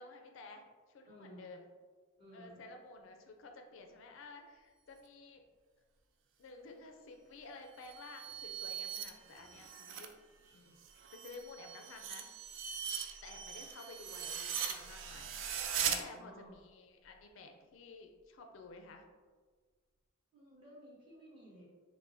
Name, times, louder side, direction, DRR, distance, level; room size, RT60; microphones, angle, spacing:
voice 1, 0.0-1.7 2.3-5.4 6.4-10.1 10.4-10.8 11.1-12.3 13.2-15.6 15.8-19.0, left 3 dB, 70° left, 4 dB, 0.4 m, -53 dB
voice 2, 1.0-1.5 2.2-2.7 15.8-16.6 20.3-21.7, equal, 25° right, -8 dB, 1.2 m, -55 dB
sound 1, 7.7-10.1 10.5-16.0, right 8 dB, 65° right, 0.3 m, -40 dB
4.7 x 2.1 x 2.6 m, 1.5 s
head